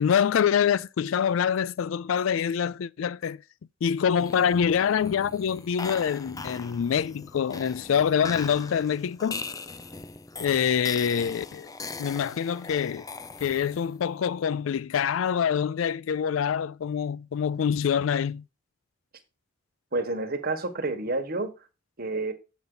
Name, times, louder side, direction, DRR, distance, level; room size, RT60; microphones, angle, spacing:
voice 1, 0.0-3.4 3.8-9.4 10.4-11.7 12.0-13.1 13.4-18.4, left 7 dB, 80° left, 0.4 m, -25 dB
sound 1, 4.1-14.0, left 4 dB, 20° left, 0.5 m, -40 dB
voice 2, 19.9-21.5 22.0-22.3, right 2 dB, 50° right, 1.4 m, -29 dB
8.0 x 7.1 x 3.9 m
head